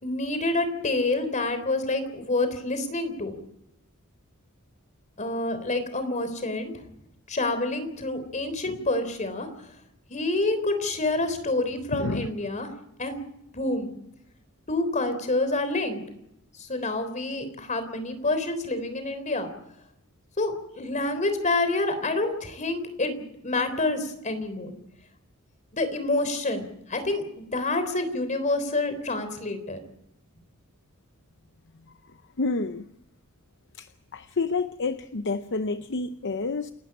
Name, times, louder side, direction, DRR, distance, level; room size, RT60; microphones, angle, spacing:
voice 1, 0.0-3.3 5.2-6.7 7.3-9.5 10.1-12.7 13.0-13.2 13.5-13.9 14.7-16.0 16.6-19.5 20.4-24.7 25.7-29.8, left 2 dB, 35° left, 9 dB, 3.6 m, -28 dB
voice 2, 11.9-12.3 32.4-32.9 33.8-33.9 34.1-36.7, left 3 dB, 55° left, 10 dB, 0.7 m, -29 dB
29.0 x 12.0 x 8.7 m, 0.82 s
head